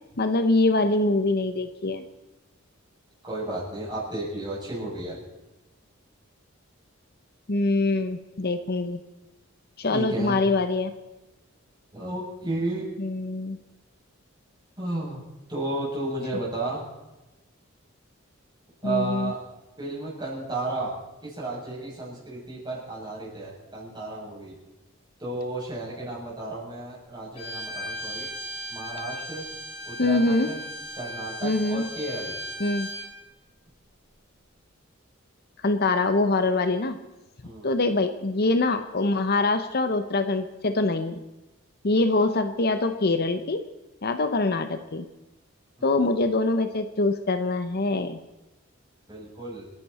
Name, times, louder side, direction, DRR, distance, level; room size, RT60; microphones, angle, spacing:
voice 1, 0.2-2.0 7.5-9.0 9.8-10.9 13.0-13.6 18.8-19.3 30.0-30.5 31.4-31.9 32.6-32.9 35.6-37.0 37.6-41.2 41.8-43.6 44.0-45.0 45.8-48.2, left 2 dB, 50° left, 9 dB, 0.9 m, -24 dB
voice 2, 3.2-5.2 9.9-10.4 11.9-12.9 14.8-15.2 15.5-16.8 18.8-19.4 19.8-24.5 25.2-28.3 28.7-29.4 29.9-30.6 30.9-32.3 37.4-37.7 45.8-46.2 49.1-49.7, right 2 dB, 20° right, -6 dB, 7.2 m, -33 dB
Bowed string instrument, 27.4-33.1, equal, 25° left, 5.8 m, -37 dB
29.0 x 10.5 x 4.3 m, 1.0 s
head